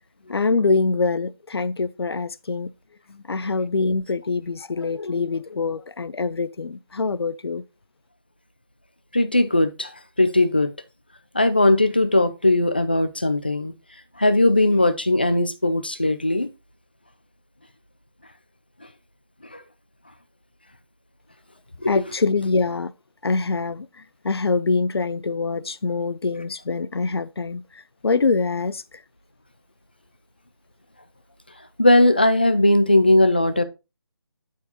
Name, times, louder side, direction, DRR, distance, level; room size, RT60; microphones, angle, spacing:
voice 1, 0.3-2.7 3.1-7.6 21.8-22.9 23.2-23.9 24.2-27.6 28.0-28.8, left 4 dB, 75° left, 0.6 m, -24 dB
voice 2, 9.1-9.9 10.2-10.7 11.3-13.7 14.2-16.5 21.8-21.9 31.8-33.6, left 1 dB, 25° left, 0.4 m, -18 dB
11.5 x 4.7 x 2.8 m
figure-of-eight pair, 180°, 13 cm